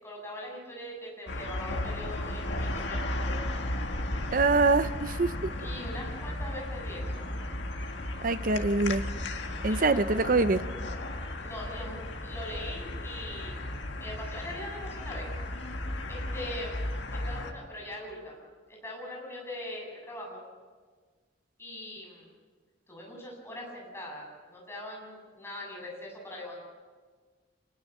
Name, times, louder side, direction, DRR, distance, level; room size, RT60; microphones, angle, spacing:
voice 1, 0.0-3.6 5.6-7.3 9.7-10.0 11.4-13.6 14.0-15.3 16.1-18.4 18.7-20.4 21.6-22.3 22.9-26.6, left 1 dB, 15° left, -2 dB, 7.4 m, -41 dB
sound 1, 1.3-17.5, left 1 dB, 70° left, 1.9 m, -35 dB
voice 2, 4.3-5.3 8.2-9.0 9.6-10.6, right 3 dB, 45° right, 13 dB, 0.7 m, -24 dB
26.0 x 20.0 x 7.3 m, 1.5 s
head